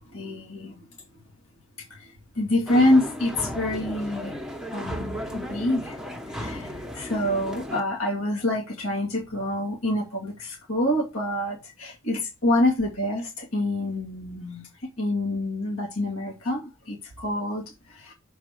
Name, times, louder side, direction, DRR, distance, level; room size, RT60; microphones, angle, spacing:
voice 1, 0.1-0.8 1.9-4.4 4.7-6.0 6.3-14.6 15.0-18.1, left 1 dB, 80° left, -3 dB, 2.6 m, -27 dB
sound 1, 2.7-7.8, equal, ahead, 1.0 m, -35 dB
6.8 x 4.8 x 5.1 m, 0.26 s
head